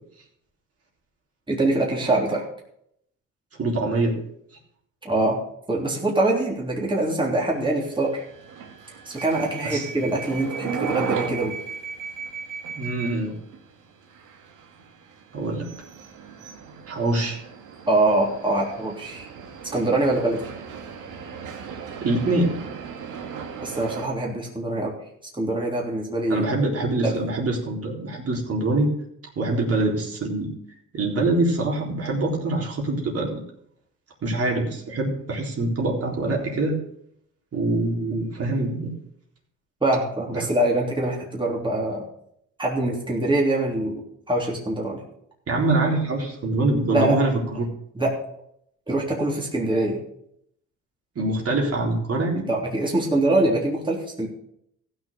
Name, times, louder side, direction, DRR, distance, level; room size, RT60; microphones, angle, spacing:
voice 1, 1.5-2.5 5.0-5.4 5.7-8.2 9.0-11.5 17.9-19.3 19.7-20.4 23.6-25.0 25.3-26.5 27.0-27.1 39.8-42.0 42.6-44.0 44.3-45.0 46.9-47.2 47.9-48.1 48.9-50.0 52.3-54.3, right 2 dB, 15° right, -2 dB, 3.3 m, -24 dB
voice 2, 3.6-4.2 9.6-9.9 12.8-13.4 15.3-15.7 16.9-17.4 22.0-22.6 26.3-28.9 29.4-30.5 30.9-33.4 34.2-36.8 37.5-38.9 40.3-40.5 45.5-47.7 51.2-52.5, right 2 dB, 50° right, -1 dB, 3.9 m, -24 dB
sound 1, 7.8-24.1, right 6 dB, 85° right, 1.9 m, -36 dB
15.0 x 6.5 x 6.7 m, 0.72 s
cardioid pair, 90°, 30 cm